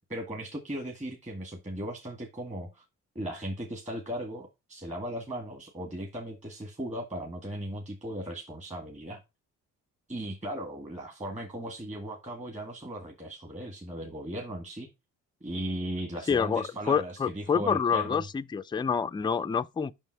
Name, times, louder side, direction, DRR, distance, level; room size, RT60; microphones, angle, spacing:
voice 1, 0.1-2.8 3.2-9.2 10.1-14.9 15.4-18.2, right 1 dB, 25° right, 1.7 m, -37 dB
voice 2, 16.3-19.9, left 6 dB, 15° left, 0.4 m, -27 dB
5.8 x 5.4 x 4.6 m
cardioid pair, 90°, 30 cm